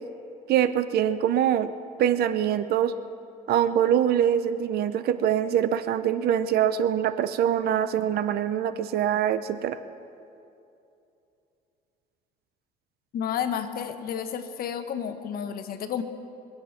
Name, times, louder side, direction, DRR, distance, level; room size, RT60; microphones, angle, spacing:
voice 1, 0.5-1.7 2.0-2.9 3.5-9.8, right 10 dB, 70° right, 13 dB, 0.7 m, -24 dB
voice 2, 13.1-16.0, left 8 dB, 60° left, 8 dB, 1.2 m, -31 dB
24.0 x 8.1 x 6.0 m, 2.7 s
cardioid pair, 110°, 17 cm